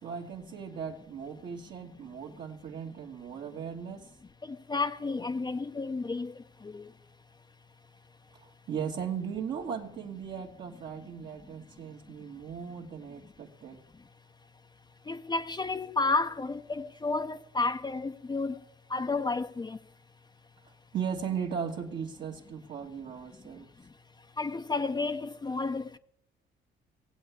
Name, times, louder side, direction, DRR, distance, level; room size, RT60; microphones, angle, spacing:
voice 1, 0.0-4.1 8.3-13.8 20.9-23.7, right 7 dB, 60° right, 1.6 m, -37 dB
voice 2, 4.7-6.3 6.6-6.9 15.1-18.5 18.9-19.8 24.4-26.0, left 3 dB, 20° left, 0.6 m, -31 dB
18.0 x 8.1 x 8.2 m
cardioid pair, 90°, 20 cm